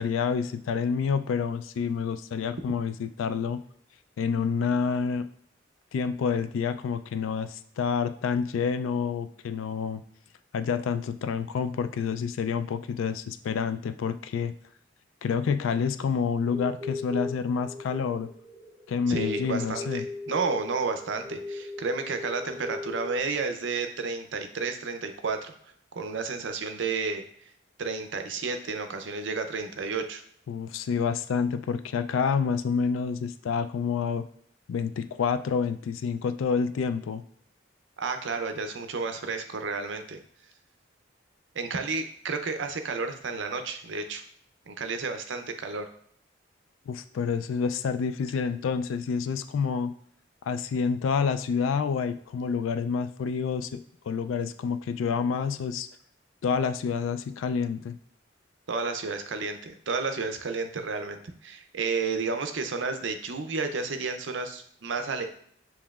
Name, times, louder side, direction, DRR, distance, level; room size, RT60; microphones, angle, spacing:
voice 1, 0.0-3.6 4.2-5.3 5.9-10.0 10.5-14.5 15.2-18.3 18.9-20.0 30.5-34.3 34.7-37.2 46.9-49.9 50.5-55.9 56.4-58.0, left 6 dB, 90° left, 11 dB, 0.3 m, -28 dB
sound 1, 16.5-23.2, left 2 dB, 30° right, 0.7 m, -38 dB
voice 2, 19.1-25.5 26.0-27.5 27.8-30.2 38.0-40.2 41.5-44.2 44.7-45.9 58.7-65.3, right 4 dB, 75° right, 7 dB, 0.5 m, -31 dB
7.1 x 3.0 x 2.4 m, 0.63 s
head